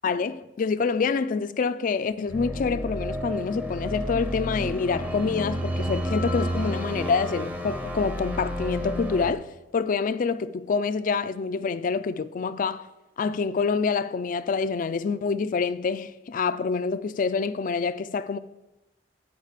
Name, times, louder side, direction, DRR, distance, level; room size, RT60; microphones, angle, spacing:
voice 1, 0.0-9.5 9.7-12.9 13.2-18.4, left 5 dB, 50° left, 0.4 m, -26 dB
sound 1, 2.3-9.3, equal, 10° right, 0.7 m, -31 dB
8.0 x 5.1 x 4.9 m
head